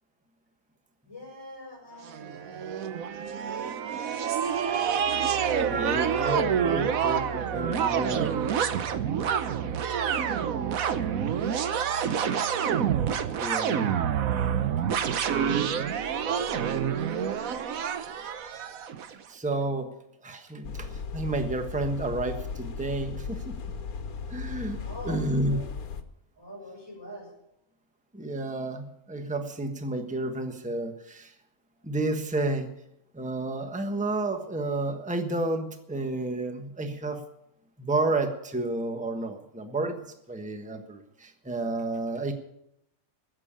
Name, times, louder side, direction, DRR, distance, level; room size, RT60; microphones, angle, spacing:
voice 1, 1.0-3.2 5.8-8.1 24.8-25.7 26.4-27.3, left 1 dB, 15° left, -3 dB, 7.1 m, -44 dB
sound 1, 2.1-19.1, right 8 dB, 75° right, 1.3 m, -27 dB
voice 2, 5.7-8.4 9.6-9.7 13.4-14.0 19.3-19.9 20.2-20.9 21.1-23.5 24.3-24.8 25.0-25.6 28.1-31.3 31.8-32.7 33.1-37.2 37.8-42.3, right 2 dB, 5° right, 6 dB, 1.2 m, -31 dB
sound 2, 20.6-26.0, left 5 dB, 80° left, 1.5 m, -36 dB
15.5 x 7.5 x 8.9 m, 0.80 s
omnidirectional pair, 1.5 m